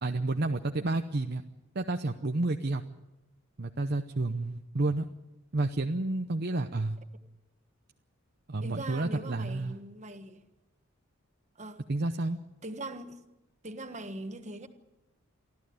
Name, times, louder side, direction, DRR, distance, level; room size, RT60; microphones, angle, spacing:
voice 1, 0.0-1.4 1.7-2.8 3.6-5.1 5.5-7.0 8.5-9.8 11.9-12.4, right 2 dB, 50° right, 0.8 m, -30 dB
voice 2, 8.6-10.4 11.6-11.8 12.6-13.2 13.6-14.7, right 1 dB, 30° right, 1.5 m, -41 dB
24.0 x 14.5 x 9.5 m
head